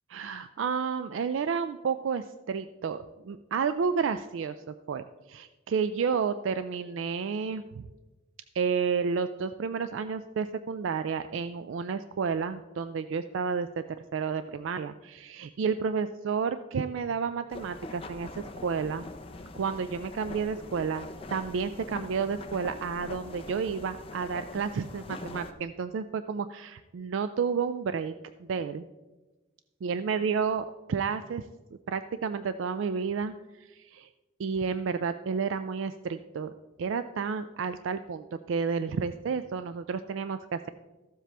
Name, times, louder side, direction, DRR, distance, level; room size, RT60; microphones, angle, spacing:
voice 1, 0.1-7.9 8.5-13.8 14.1-18.3 18.6-19.0 19.5-28.1 28.4-28.8 29.8-31.5 31.9-34.1 34.4-36.5 36.8-40.7, right 5 dB, 75° right, 11 dB, 0.4 m, -31 dB
sound 1, 17.5-25.5, left 2 dB, 30° left, 0.6 m, -43 dB
14.0 x 7.5 x 3.4 m, 1.2 s
head